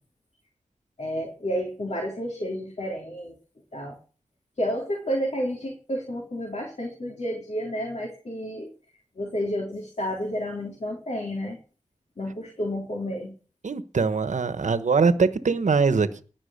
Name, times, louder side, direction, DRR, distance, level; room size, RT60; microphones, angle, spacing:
voice 1, 1.0-3.4 3.7-4.0 4.6-8.7 9.2-11.6 12.2-13.3, equal, 60° left, 3.8 m, -30 dB
voice 2, 13.6-16.2, right 4 dB, 75° right, 1.1 m, -22 dB
18.0 x 6.1 x 6.6 m
cardioid pair, 45°, 13 cm